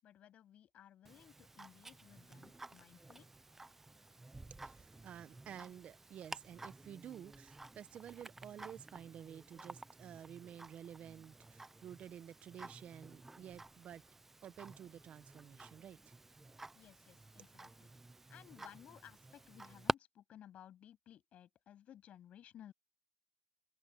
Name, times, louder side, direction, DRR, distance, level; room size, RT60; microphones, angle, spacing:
voice 1, 0.0-3.3 16.7-17.9 18.3-22.7, left 10 dB, 50° left, 8.0 m, -58 dB
Tick-tock, 1.1-19.9, right 2 dB, 10° right, 0.4 m, -49 dB
voice 2, 4.6-14.0 14.4-16.1, right 9 dB, 45° right, 0.8 m, -52 dB
cardioid pair, 150°, 3 cm